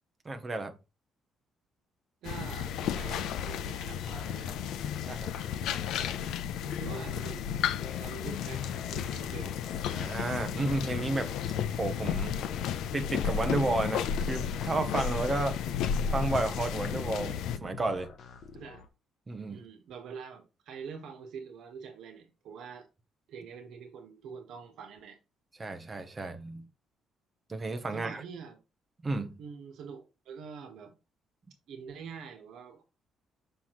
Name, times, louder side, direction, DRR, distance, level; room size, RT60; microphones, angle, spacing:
voice 1, 0.2-0.8 5.1-5.3 9.9-11.3 11.7-12.3 12.9-15.6 16.1-18.1 19.3-19.6 25.6-26.6 27.5-28.2 29.0-29.4, right 2 dB, 15° right, 1.0 m, -32 dB
sound 1, 2.2-17.6, left 8 dB, 80° left, 0.6 m, -33 dB
voice 2, 2.2-4.6 6.6-7.7 8.0-8.6 8.9-9.6 15.7-15.8 18.5-18.8 19.5-22.9 23.3-25.2 27.9-28.6 29.4-31.0 31.7-32.8, right 6 dB, 60° right, 1.5 m, -45 dB
sound 2, 4.1-18.9, left 7 dB, 45° left, 1.1 m, -46 dB
7.0 x 5.8 x 3.1 m
cardioid pair, 175°, 0 cm